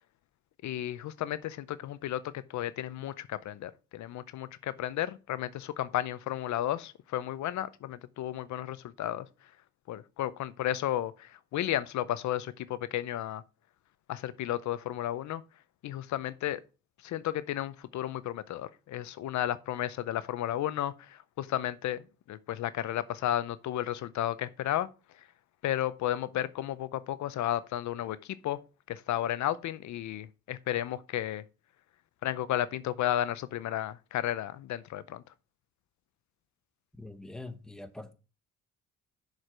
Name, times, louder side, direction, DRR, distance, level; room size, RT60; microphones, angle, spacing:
voice 1, 0.6-9.3 9.9-13.4 14.1-15.4 15.8-16.6 17.0-24.9 25.1-25.3 25.6-28.6 28.9-31.4 32.2-35.2, left 12 dB, 70° left, 0.6 m, -33 dB
voice 2, 36.9-38.1, left 2 dB, ahead, 1.0 m, -44 dB
6.5 x 4.8 x 6.0 m
cardioid pair, 90°, 30 cm